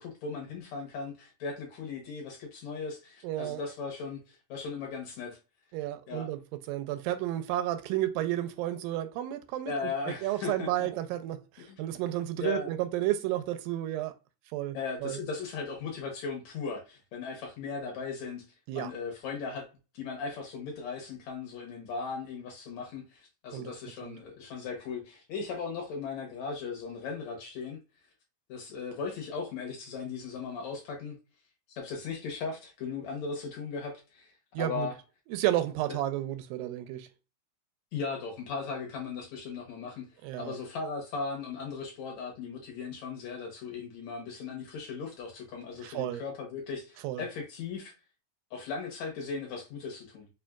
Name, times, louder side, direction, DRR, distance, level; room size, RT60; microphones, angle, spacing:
voice 1, 0.0-5.4 6.1-6.3 9.7-10.9 11.7-11.9 12.4-12.7 14.7-18.4 18.7-19.7 19.9-27.8 28.5-31.2 31.7-34.9 37.9-40.1 40.4-47.9 48.5-50.3, left 5 dB, 65° left, 1.9 m, -37 dB
voice 2, 3.2-3.6 5.7-6.4 6.7-9.7 10.2-14.1 14.5-15.2 18.7-18.9 23.5-23.7 24.0-24.2 34.5-34.9 35.3-37.1 40.2-40.6 45.8-46.2 47.0-47.2, right 14 dB, 90° right, 2.3 m, -32 dB
5.4 x 2.5 x 2.3 m
omnidirectional pair, 3.9 m